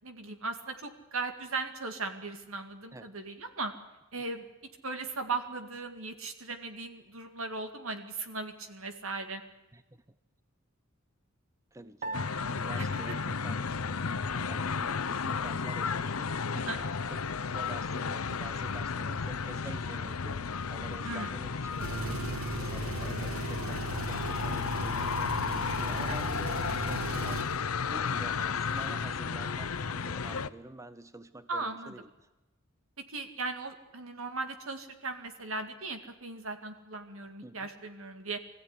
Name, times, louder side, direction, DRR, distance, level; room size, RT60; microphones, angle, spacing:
voice 1, 0.0-3.7 4.1-4.4 4.8-9.4 12.8-12.9 16.6-16.8 21.0-21.3 31.5-31.9 33.1-38.4, right 3 dB, 70° right, 7 dB, 2.3 m, -37 dB
voice 2, 11.7-14.1 14.4-16.3 16.7-22.2 22.7-25.3 25.8-27.6 27.9-32.1 37.4-37.7, right 1 dB, 15° right, 12 dB, 0.6 m, -48 dB
Piano, 12.0-14.5, right 2 dB, 40° right, 0.9 m, -44 dB
sound 1, 12.1-30.5, left 5 dB, 85° left, 0.7 m, -33 dB
Engine, 21.7-27.6, right 2 dB, 85° right, 1.2 m, -37 dB
21.5 x 15.0 x 9.8 m, 1.1 s
head